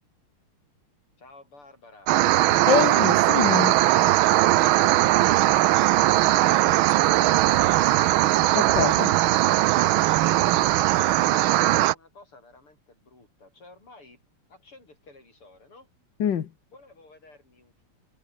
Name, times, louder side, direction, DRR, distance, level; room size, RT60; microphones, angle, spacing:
voice 1, 1.2-2.1 4.9-7.8 10.4-14.2 14.5-15.9 16.7-17.8, left 2 dB, 80° left, 8.4 m, -52 dB
sound 1, 2.1-11.9, right 15 dB, 80° right, 1.4 m, -20 dB
voice 2, 2.7-3.8 8.5-9.1 16.2-16.5, left 8 dB, 60° left, 1.9 m, -25 dB
omnidirectional pair, 2.4 m